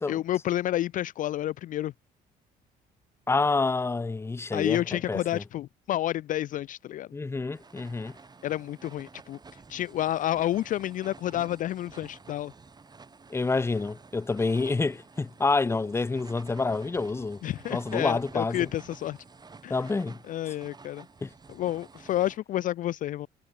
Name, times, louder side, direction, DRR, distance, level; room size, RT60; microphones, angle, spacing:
voice 1, 0.1-1.9 4.5-7.1 8.4-9.4 9.7-12.5 17.4-19.2 19.6-19.8 20.3-21.1 21.5-23.3, left 13 dB, 50° left, 0.4 m, -30 dB
voice 2, 3.3-5.4 7.1-8.2 13.3-17.4 17.7-18.7 19.7-20.2 21.2-21.3, left 3 dB, 15° left, 0.7 m, -28 dB
sound 1, 7.5-22.4, right 4 dB, 25° right, 5.4 m, -51 dB
cardioid pair, 110°, 17 cm